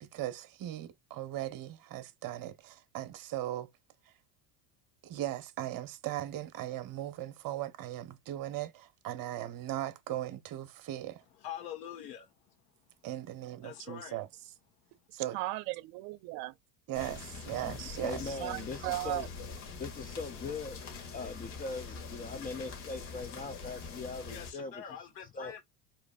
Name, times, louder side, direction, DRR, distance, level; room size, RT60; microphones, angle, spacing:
voice 1, 0.0-3.7 4.0-4.1 5.0-11.2 13.0-14.3 15.1-15.4 16.9-18.4, right 13 dB, 45° right, 1.2 m, -38 dB
voice 2, 11.4-12.6 13.6-14.2 24.3-25.6, left 9 dB, 90° left, 2.2 m, -44 dB
voice 3, 15.3-16.5 18.4-19.3, right 18 dB, 65° right, 0.7 m, -36 dB
sound 1, 16.9-24.5, left 4 dB, 55° left, 2.3 m, -44 dB
voice 4, 17.5-19.3 19.8-20.8 21.1-24.8 25.3-25.5, left 3 dB, 20° left, 0.4 m, -40 dB
5.0 x 3.8 x 2.5 m
supercardioid pair, 120°, 49 cm